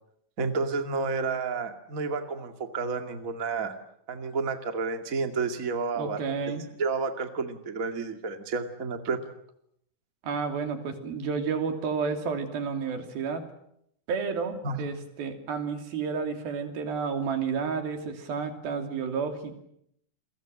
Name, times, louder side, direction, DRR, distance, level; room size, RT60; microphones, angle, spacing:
voice 1, 0.4-3.7 4.1-6.2 6.8-9.2 14.6-14.8, right 4 dB, 25° right, 6 dB, 2.1 m, -30 dB
voice 2, 6.0-6.6 10.2-13.4 14.1-19.6, right 5 dB, 90° right, 6 dB, 4.8 m, -31 dB
29.0 x 23.5 x 7.6 m, 0.73 s
omnidirectional pair, 4.1 m